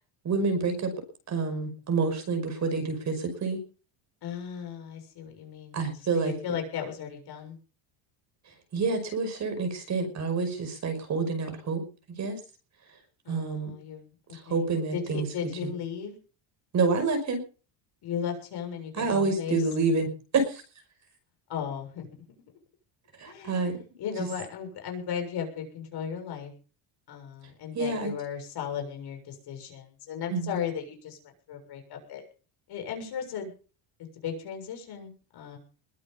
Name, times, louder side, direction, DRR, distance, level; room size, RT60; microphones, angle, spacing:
voice 1, 0.2-0.9 1.3-3.6 5.7-6.3 8.7-11.8 12.1-12.4 13.3-13.7 14.3-15.3 16.7-17.4 18.9-20.6 23.2-23.8 24.2-24.3 27.7-28.1 30.3-30.6, right 4 dB, 35° right, 7 dB, 5.5 m, -28 dB
voice 2, 4.2-5.8 6.1-7.6 13.2-14.1 14.5-14.6 14.9-16.2 18.0-19.6 21.5-22.1 23.3-26.5 27.1-31.2 31.5-32.2 32.7-33.5 34.2-35.6, left 7 dB, 50° left, 4 dB, 7.1 m, -36 dB
21.5 x 9.4 x 5.8 m, 0.38 s
cardioid pair, 160°, 50 cm